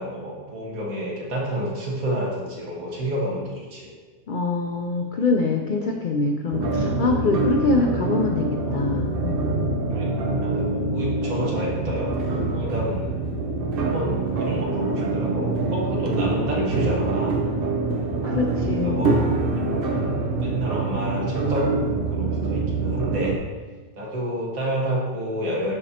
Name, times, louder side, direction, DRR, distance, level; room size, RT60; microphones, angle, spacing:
voice 1, 0.0-3.9 5.8-6.2 7.0-7.3 8.6-8.8 9.9-12.1 12.5-13.1 13.8-17.4 18.8-19.6 20.4-21.7 22.1-23.3 23.9-25.8, equal, 70° right, -3 dB, 2.0 m, -29 dB
voice 2, 4.3-9.8 18.2-19.0, left 3 dB, 85° left, 3 dB, 0.4 m, -24 dB
sound 1, 6.5-23.4, right 3 dB, 50° right, 0.8 m, -25 dB
12.0 x 4.2 x 2.8 m, 1.4 s
omnidirectional pair, 1.5 m